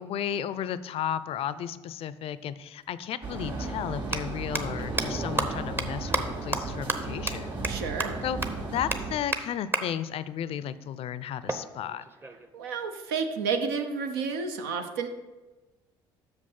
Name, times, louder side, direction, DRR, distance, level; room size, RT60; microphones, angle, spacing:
voice 1, 0.0-7.6 8.2-8.4 8.7-12.0, left 9 dB, 55° left, 15 dB, 0.4 m, -34 dB
sound 1, 2.8-2.9 4.0-4.2 4.5-4.6 5.0-5.1 5.4-5.5 5.8-5.9 6.1-6.2 6.5-6.6 6.9-7.0 7.3-7.4 7.6-7.7 8.0-8.1 8.4-8.5 8.9-9.0 9.3-9.4 9.7-9.8 11.5-12.5, right 2 dB, 20° right, 0.7 m, -29 dB
sound 2, 3.2-9.1, right 3 dB, 45° right, 2.5 m, -35 dB
voice 2, 7.7-8.2 12.5-15.1, right 5 dB, 85° right, 6 dB, 0.7 m, -31 dB
6.3 x 5.3 x 5.5 m, 1.2 s
supercardioid pair, 65°, 12 cm